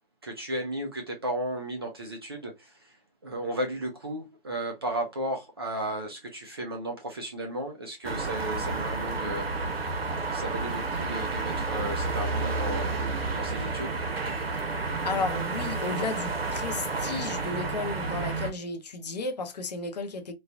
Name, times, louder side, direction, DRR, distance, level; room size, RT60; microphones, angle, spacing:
voice 1, 0.2-2.9 3.2-9.7 10.3-12.9 13.3-13.9, right 1 dB, 25° right, 0.4 m, -34 dB
sound 1, 8.0-18.5, right 3 dB, 85° right, 0.8 m, -30 dB
voice 2, 15.0-20.3, left 3 dB, 45° left, 0.6 m, -33 dB
3.1 x 2.1 x 2.4 m
figure-of-eight pair, 150°, 30 cm